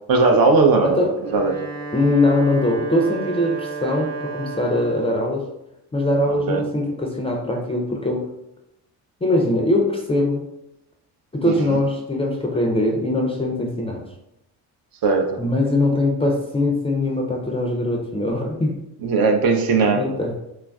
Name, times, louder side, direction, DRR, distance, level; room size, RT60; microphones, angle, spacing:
voice 1, 0.1-1.0 1.3-1.6 6.3-6.6 11.4-11.8 15.0-15.4 19.0-20.0, right 4 dB, 55° right, 4 dB, 0.6 m, -18 dB
voice 2, 0.8-1.1 1.9-5.4 5.9-8.3 9.2-10.5 11.3-14.0 15.4-18.8 19.9-20.3, left 1 dB, 15° left, 0 dB, 0.4 m, -21 dB
Wind instrument woodwind instrument, 1.1-5.3, right 3 dB, 35° right, 0.9 m, -32 dB
3.1 x 2.3 x 2.2 m, 0.87 s
supercardioid pair, 70°, 42 cm